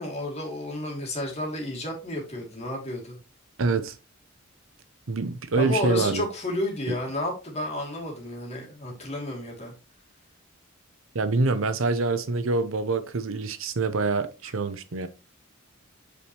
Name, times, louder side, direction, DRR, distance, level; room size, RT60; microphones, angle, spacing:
voice 1, 0.0-3.2 5.5-9.7 14.4-14.5, left 1 dB, 30° left, 2.7 m, -31 dB
voice 2, 3.6-3.9 5.1-6.2 11.1-15.1, right 3 dB, 70° right, 0.7 m, -25 dB
8.3 x 5.1 x 3.0 m
head